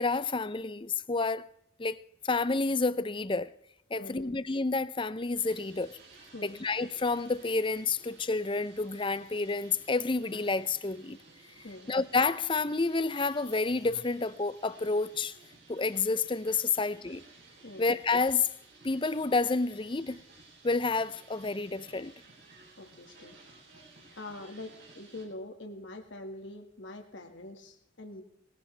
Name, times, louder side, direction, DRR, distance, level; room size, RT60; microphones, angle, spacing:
voice 1, 0.0-1.5 1.8-3.5 3.9-6.0 6.4-11.2 11.9-15.3 15.7-17.2 17.8-18.5 18.8-20.2 20.6-22.1, left 3 dB, 25° left, 0.5 m, -29 dB
voice 2, 3.9-4.4 6.3-6.6 11.6-11.9 17.6-17.9 22.8-23.4 24.2-28.2, left 2 dB, 60° left, 1.8 m, -44 dB
sound 1, 5.4-25.3, right 3 dB, 60° right, 7.7 m, -56 dB
20.5 x 15.5 x 3.4 m
head